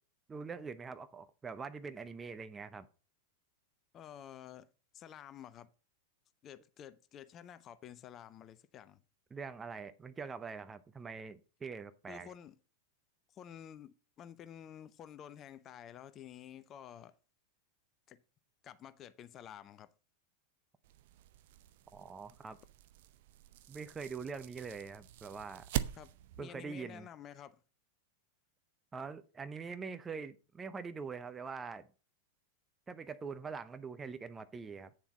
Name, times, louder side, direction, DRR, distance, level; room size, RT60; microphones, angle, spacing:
voice 1, 0.3-2.9 9.3-12.3 21.9-22.6 23.7-25.7 26.4-27.1 28.9-31.9 32.9-34.9, right 5 dB, 15° right, 0.7 m, -44 dB
voice 2, 3.9-4.7 4.9-5.7 6.4-9.0 12.1-12.6 13.3-17.1 18.1-18.2 18.6-19.9 25.9-27.6, left 9 dB, 30° left, 0.7 m, -51 dB
sound 1, 20.8-26.4, right 12 dB, 50° right, 0.6 m, -43 dB
9.0 x 7.1 x 4.1 m
figure-of-eight pair, 90°, 0 cm